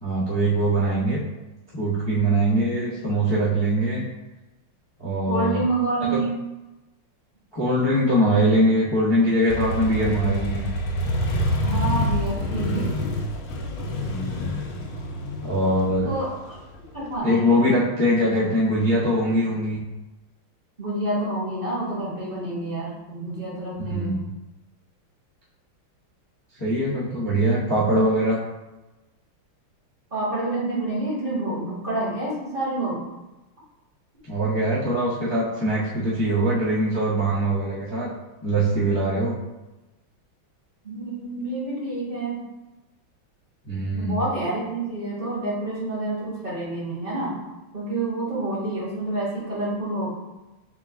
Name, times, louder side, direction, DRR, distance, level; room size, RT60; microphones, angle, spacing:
voice 1, 0.0-1.2 1.7-4.0 5.0-5.6 6.1-6.2 7.5-10.7 14.0-14.5 15.4-16.1 17.2-19.8 23.8-24.3 26.6-28.4 34.2-38.1 38.4-39.4 43.6-44.2, right 1 dB, 40° left, -10 dB, 0.3 m, -22 dB
voice 2, 5.3-6.3 11.6-12.8 16.0-16.3 16.9-17.7 20.8-24.1 30.1-33.0 40.8-42.4 43.9-47.3 47.7-50.1, right 2 dB, 30° right, -7 dB, 1.4 m, -28 dB
Motorcycle, 9.5-17.1, left 1 dB, 85° left, 1.5 m, -27 dB
3.7 x 3.6 x 3.4 m, 1.1 s
omnidirectional pair, 2.3 m